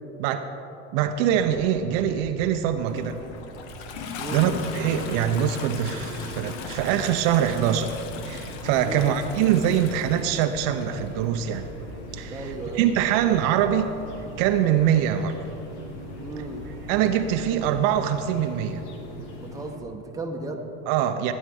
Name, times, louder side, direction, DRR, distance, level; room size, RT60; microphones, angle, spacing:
sound 1, 0.9-17.9, right 3 dB, 35° right, 1.1 m, -46 dB
voice 1, 0.9-3.2 4.3-7.9 8.2-11.7 12.1-13.9 14.4-15.4 16.9-18.8 20.9-21.3, right 10 dB, 60° right, 7 dB, 0.7 m, -23 dB
Toilet flush, 2.7-11.1 12.1-12.2, left 6 dB, 65° left, 1.1 m, -39 dB
voice 2, 4.2-4.5 8.8-9.2 12.3-12.9 16.2-16.7 19.4-20.7, right 2 dB, 10° right, 1 dB, 1.1 m, -35 dB
sound 2, 4.5-19.8, left 1 dB, 85° left, 1.9 m, -40 dB
15.5 x 9.6 x 3.5 m, 3.0 s
supercardioid pair, 120°, 35 cm